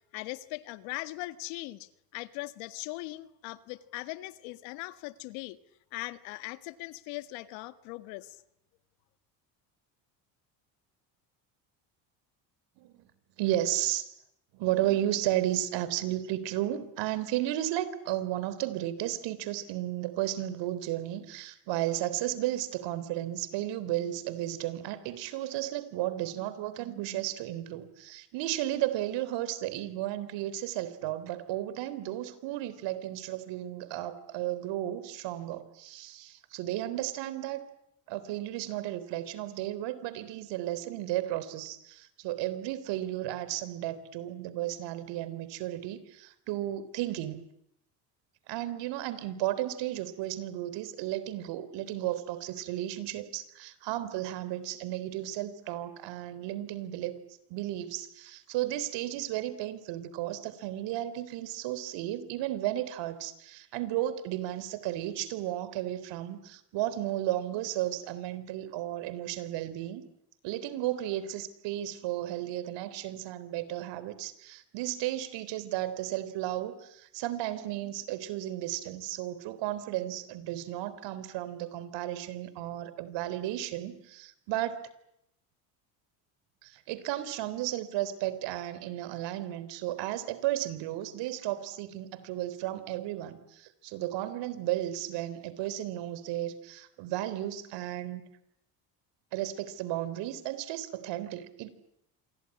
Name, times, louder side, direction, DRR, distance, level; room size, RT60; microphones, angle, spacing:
voice 1, 0.1-5.6 5.9-8.4, left 19 dB, 80° left, 12 dB, 1.8 m, -40 dB
voice 2, 12.8-13.1 13.4-14.1 14.5-37.6 38.1-47.4 48.5-57.2 57.5-70.0 70.4-84.8 86.6-98.2 99.3-101.7, right 14 dB, 70° right, 15 dB, 3.7 m, -34 dB
27.0 x 22.5 x 9.8 m, 0.78 s
supercardioid pair, 105°, 45 cm